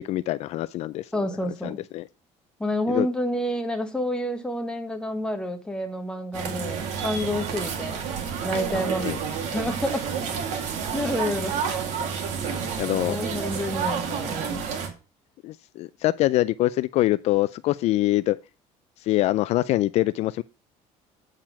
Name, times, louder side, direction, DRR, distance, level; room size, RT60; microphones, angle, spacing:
voice 1, 0.0-1.0 1.6-2.0 2.9-3.1 9.0-9.2 12.8-13.2 15.4-18.4 19.1-20.4, left 16 dB, 60° left, 0.4 m, -24 dB
voice 2, 1.1-1.8 2.6-8.0 8.4-9.3 9.5-10.0 10.9-11.6 13.1-14.6, left 1 dB, 5° left, 1.3 m, -29 dB
sound 1, 6.3-14.9, right 6 dB, 70° right, 2.2 m, -30 dB
8.8 x 4.8 x 5.7 m
cardioid pair, 140°, 13 cm